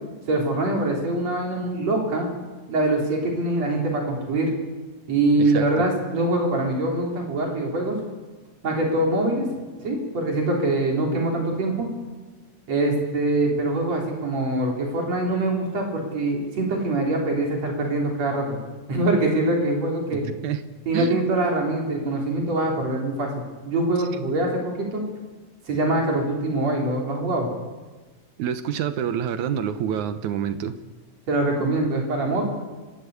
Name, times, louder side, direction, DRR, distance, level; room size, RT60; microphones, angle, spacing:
voice 1, 0.3-2.3 2.7-4.5 5.1-8.0 8.6-9.5 9.8-11.9 12.7-18.6 18.9-20.2 20.9-25.0 25.7-27.5 31.3-32.4, right 2 dB, 60° right, 0 dB, 4.8 m, -24 dB
voice 2, 20.1-20.6 20.9-21.2 28.4-30.8, right 9 dB, 90° right, 11 dB, 2.5 m, -27 dB
30.0 x 13.0 x 8.3 m, 1.3 s
omnidirectional pair, 3.3 m